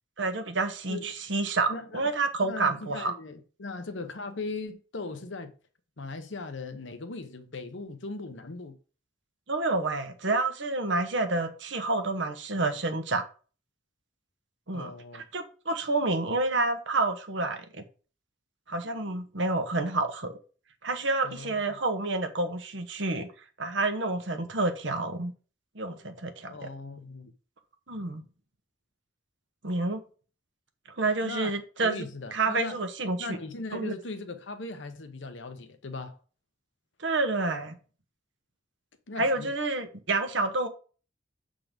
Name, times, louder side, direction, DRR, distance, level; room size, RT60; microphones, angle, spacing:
voice 1, 0.2-3.1 9.5-13.2 14.7-17.8 18.7-20.4 20.8-23.3 23.6-25.3 25.7-26.5 27.9-28.2 29.6-30.0 31.0-32.0 32.3-33.4 33.7-33.9 37.0-37.8 39.2-40.7, right 3 dB, 70° right, 1.1 m, -29 dB
voice 2, 1.7-2.1 2.4-5.5 6.0-8.8 14.7-15.2 21.2-21.6 26.4-27.3 31.2-31.5 31.8-32.8 33.2-36.2 39.1-39.5, left 3 dB, 70° left, 0.9 m, -39 dB
7.4 x 3.8 x 5.1 m
head